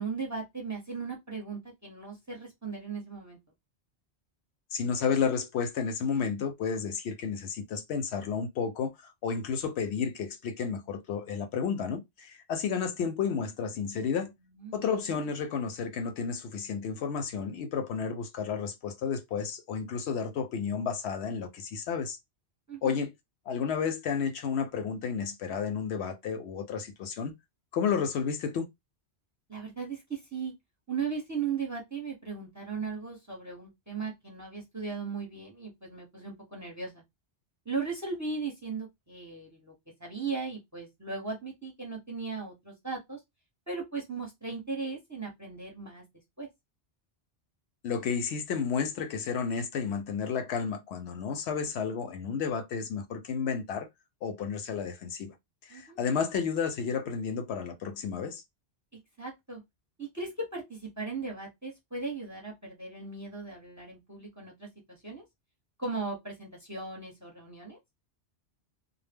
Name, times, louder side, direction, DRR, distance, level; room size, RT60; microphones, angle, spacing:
voice 1, 0.0-3.4 14.6-15.2 22.7-23.0 29.5-30.5 30.9-37.0 37.6-39.7 40.0-43.2 43.7-46.0 46.4-46.5 55.7-56.0 59.2-59.6 60.0-65.2 65.8-67.8, right 4 dB, 20° right, 0.7 m, -37 dB
voice 2, 4.7-14.3 14.7-22.2 22.8-23.1 23.5-27.3 27.7-28.7 47.8-53.9 54.2-55.3 55.6-58.4, left 6 dB, 75° left, 0.8 m, -32 dB
2.1 x 2.0 x 3.4 m
omnidirectional pair, 1.1 m